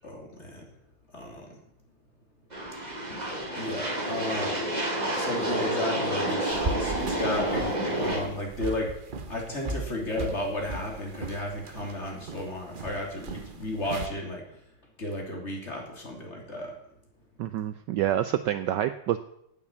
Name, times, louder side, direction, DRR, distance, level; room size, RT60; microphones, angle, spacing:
voice 1, 0.0-0.6 1.1-1.4 3.5-4.6 5.1-8.9 9.3-14.4 15.0-16.7, left 1 dB, 30° left, 0 dB, 3.2 m, -33 dB
sound 1, 2.5-8.2, right 1 dB, 20° right, 2.8 m, -29 dB
sound 2, 6.5-14.1, right 3 dB, 50° right, 0.6 m, -37 dB
voice 2, 17.4-19.2, right 12 dB, 70° right, 11 dB, 1.1 m, -27 dB
9.6 x 9.0 x 8.4 m, 0.77 s
omnidirectional pair, 2.3 m